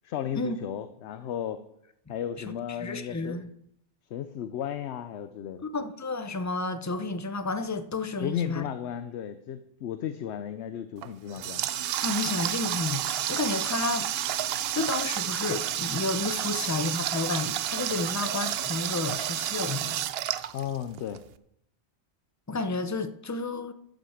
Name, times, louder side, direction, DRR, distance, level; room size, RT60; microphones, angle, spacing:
voice 1, 0.0-1.6 2.1-3.4 4.1-5.6 8.2-11.6 20.5-21.2, left 9 dB, 70° left, 0.9 m, -34 dB
voice 2, 2.8-3.5 5.6-8.6 12.0-14.1 14.7-20.0 22.5-23.7, left 3 dB, 20° left, 0.5 m, -31 dB
Water tap faucet, 11.0-21.2, right 11 dB, 65° right, 0.7 m, -30 dB
12.0 x 6.2 x 6.5 m
omnidirectional pair, 1.2 m